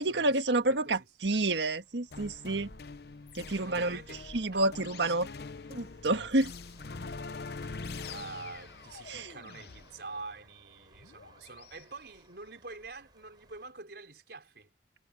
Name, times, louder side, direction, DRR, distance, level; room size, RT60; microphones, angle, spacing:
voice 1, 0.0-2.7 3.3-4.0 4.3-5.3 5.7-6.5 9.1-9.3, right 2 dB, 85° right, 1.5 m, -29 dB
sound 1, 1.2-13.7, right 1 dB, 25° right, 5.2 m, -59 dB
sound 2, 2.1-11.8, left 4 dB, 60° left, 0.7 m, -44 dB
voice 2, 3.5-4.2 4.5-4.8 8.1-14.7, right 3 dB, 65° right, 4.6 m, -46 dB
head